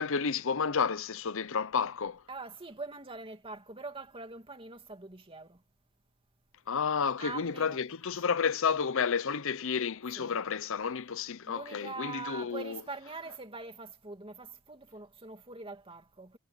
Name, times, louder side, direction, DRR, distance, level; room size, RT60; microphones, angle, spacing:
voice 1, 0.0-2.2 6.7-12.8, left 6 dB, 65° left, 0.7 m, -31 dB
voice 2, 2.3-5.6 7.2-7.8 8.2-8.4 10.2-10.4 11.5-16.4, right 3 dB, 25° right, 2.7 m, -43 dB
head